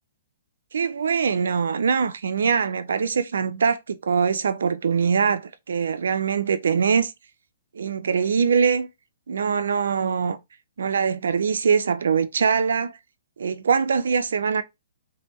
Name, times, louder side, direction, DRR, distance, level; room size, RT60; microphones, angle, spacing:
voice 1, 0.7-7.1 7.7-8.9 9.3-10.4 10.8-13.0 13.4-14.6, right 6 dB, 70° right, 0.4 m, -23 dB
3.3 x 2.2 x 3.0 m
figure-of-eight pair, 125°, 0 cm